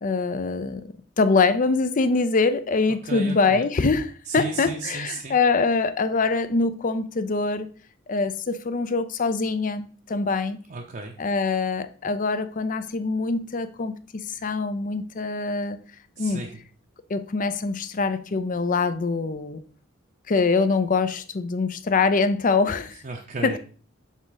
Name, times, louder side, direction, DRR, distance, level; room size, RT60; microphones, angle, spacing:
voice 1, 0.0-7.7 8.1-10.6 11.2-15.8 16.2-16.4 17.1-19.6 20.3-23.0 23.4-23.6, left 4 dB, 45° left, 0.5 m, -24 dB
voice 2, 3.0-3.7 4.3-5.4 10.7-11.2 16.2-16.6 23.0-23.6, right 3 dB, 45° right, 0.7 m, -34 dB
7.2 x 3.7 x 4.0 m
head